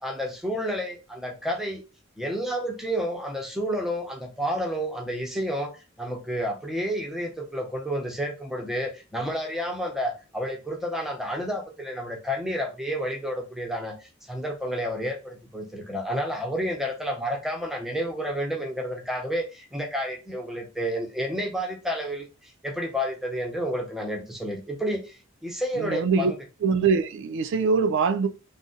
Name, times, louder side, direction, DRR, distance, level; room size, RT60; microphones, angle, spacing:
voice 1, 0.0-1.8 2.2-26.4, equal, ahead, 0.6 m, -30 dB
voice 2, 25.8-26.3 26.6-28.3, right 5 dB, 60° right, 0.3 m, -23 dB
2.6 x 2.0 x 3.7 m
head